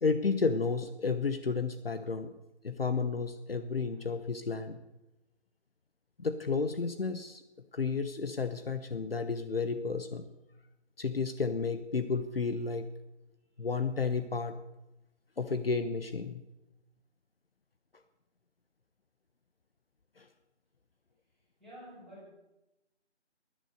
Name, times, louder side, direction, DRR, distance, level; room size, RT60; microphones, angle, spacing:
voice 1, 0.0-2.3 2.6-4.8 6.2-7.4 7.7-10.3 11.0-12.9 13.6-14.6 15.4-16.4 20.2-20.3, left 4 dB, 55° left, 9 dB, 1.1 m, -32 dB
voice 2, 3.8-4.1 13.5-13.7 21.3-22.3, equal, ahead, -10 dB, 4.9 m, -52 dB
20.0 x 10.0 x 6.6 m, 0.97 s
figure-of-eight pair, 165°, 35 cm